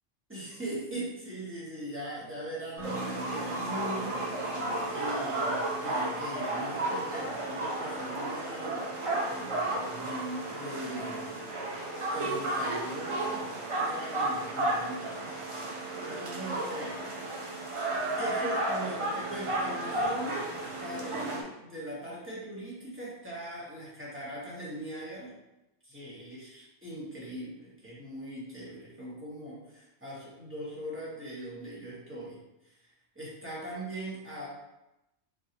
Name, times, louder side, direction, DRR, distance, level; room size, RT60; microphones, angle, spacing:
voice 1, 0.3-4.2 4.9-8.9 9.1-11.4 12.1-13.4 13.8-15.5 16.1-17.0 18.2-25.3 25.8-32.4 32.6-32.8 33.1-34.5, right 1 dB, 10° right, -7 dB, 0.9 m, -40 dB
sound 1, 2.8-21.4, right 2 dB, 45° right, 0.4 m, -33 dB
Acoustic guitar, 2.8-8.0, right 2 dB, 75° right, 1.5 m, -44 dB
4.0 x 2.3 x 2.8 m, 0.93 s
omnidirectional pair, 1.3 m